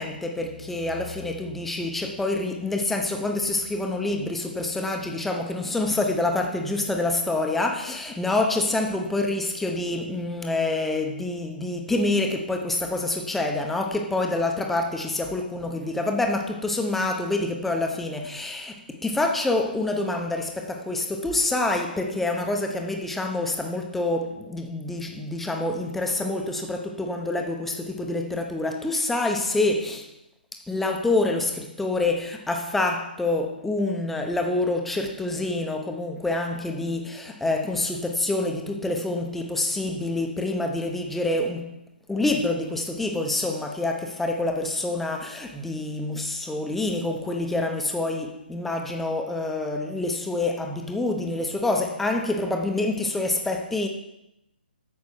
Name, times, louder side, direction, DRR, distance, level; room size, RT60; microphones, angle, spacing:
voice 1, 0.0-30.1 30.7-41.8 42.1-53.9, left 2 dB, 5° left, 0.8 m, -27 dB
8.5 x 6.1 x 6.5 m
hypercardioid pair, 150°, 6 cm